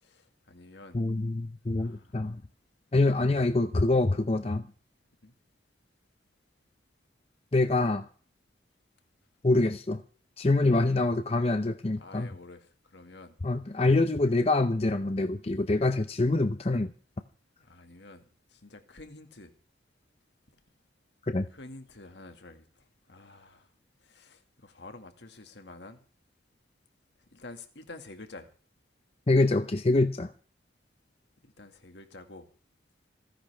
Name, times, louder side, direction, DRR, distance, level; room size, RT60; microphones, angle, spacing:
voice 1, 0.0-1.0 1.8-2.3 5.2-5.3 12.0-13.4 17.6-18.2 18.5-19.5 21.5-23.7 24.0-26.0 27.3-28.5 31.4-32.5, left 2 dB, 65° left, 6 dB, 1.9 m, -49 dB
voice 2, 0.9-2.4 2.9-4.6 7.5-8.1 9.4-10.0 10.4-12.3 13.4-16.9 21.2-21.5 29.3-30.3, left 2 dB, 30° left, 9 dB, 0.6 m, -25 dB
27.5 x 10.0 x 3.4 m, 0.40 s
head